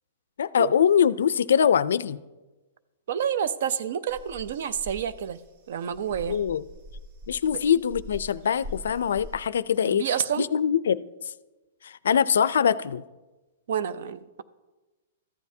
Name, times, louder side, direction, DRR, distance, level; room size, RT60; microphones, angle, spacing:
voice 1, 0.4-2.2 6.3-6.6 7.3-10.0 10.4-11.1 11.8-13.0, left 8 dB, 85° left, 18 dB, 0.3 m, -23 dB
voice 2, 3.1-5.4 5.7-6.4 9.9-10.4 13.7-14.4, right 8 dB, 60° right, 15 dB, 0.5 m, -29 dB
sound 1, 4.1-9.4, left 1 dB, 45° right, 1.0 m, -43 dB
14.0 x 9.4 x 2.7 m, 1.2 s
hypercardioid pair, 160°, 0 cm